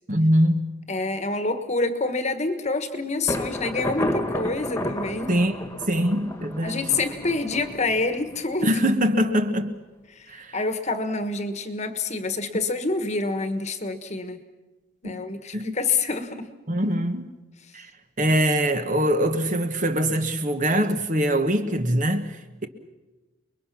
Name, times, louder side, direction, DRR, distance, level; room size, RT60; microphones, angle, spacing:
voice 1, 0.1-0.7 5.3-5.5 5.9-6.8 8.6-9.8 10.3-10.6 15.0-15.2 15.5-15.8 16.7-17.3 17.7-17.9 18.2-22.4, equal, 35° right, 1.1 m, -23 dB
voice 2, 0.9-5.3 6.6-8.8 10.1-14.4 15.0-16.5, left 3 dB, 35° left, 1.4 m, -27 dB
Thunder, 3.3-8.9, left 1 dB, 10° left, 1.7 m, -32 dB
29.0 x 22.0 x 6.0 m
head